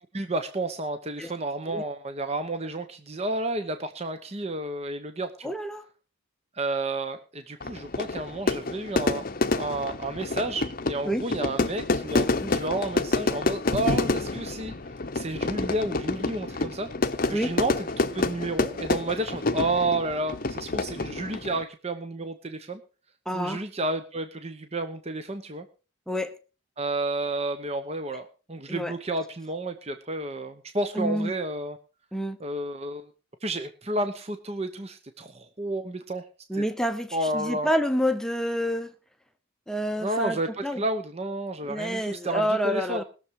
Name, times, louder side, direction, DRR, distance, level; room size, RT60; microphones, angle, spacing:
voice 1, 0.1-5.5 6.5-9.3 9.5-14.8 15.1-16.9 17.3-22.8 23.3-25.7 26.8-31.8 32.4-33.1 33.4-36.2 37.1-37.7 40.0-43.0, right 2 dB, 30° right, 0.9 m, -31 dB
voice 2, 5.4-5.9 11.0-11.3 12.4-12.6 17.3-17.6 23.3-23.6 26.1-26.4 28.7-28.9 30.9-31.3 32.1-32.4 36.5-38.9 39.7-40.8 41.6-43.0, equal, 5° left, 0.8 m, -28 dB
Fire / Fireworks, 7.6-21.6, left 2 dB, 45° left, 0.8 m, -28 dB
20.5 x 7.0 x 4.8 m
head